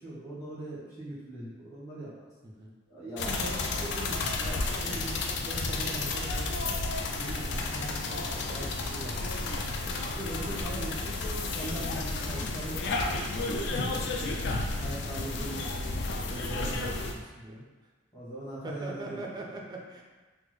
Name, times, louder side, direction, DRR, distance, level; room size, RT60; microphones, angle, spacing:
voice 1, 0.0-2.3 2.9-6.8 7.1-9.5 10.0-13.2 13.6-14.5 14.7-16.5 18.1-19.5, right 1 dB, 15° left, -9 dB, 1.1 m, -41 dB
sound 1, 3.2-17.1, left 3 dB, 65° left, 0.3 m, -32 dB
voice 2, 16.3-17.6 18.6-20.0, right 2 dB, 20° right, 0 dB, 0.4 m, -41 dB
3.4 x 2.0 x 3.2 m, 1.3 s
head